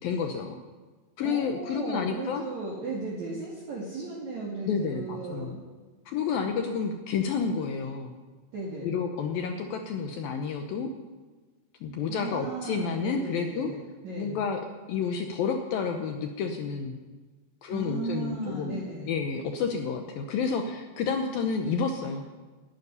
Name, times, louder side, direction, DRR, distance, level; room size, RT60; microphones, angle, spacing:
voice 1, 0.0-0.6 1.2-2.4 4.7-5.6 6.1-8.1 8.8-10.9 11.8-13.7 14.2-14.6 14.9-17.0 17.6-22.3, left 5 dB, 75° left, 4 dB, 2.3 m, -30 dB
voice 2, 1.2-5.6 8.5-8.9 12.1-13.8 14.0-14.4 17.7-19.1, right 3 dB, 45° right, -5 dB, 3.2 m, -36 dB
12.5 x 9.4 x 9.9 m, 1.3 s
omnidirectional pair, 5.0 m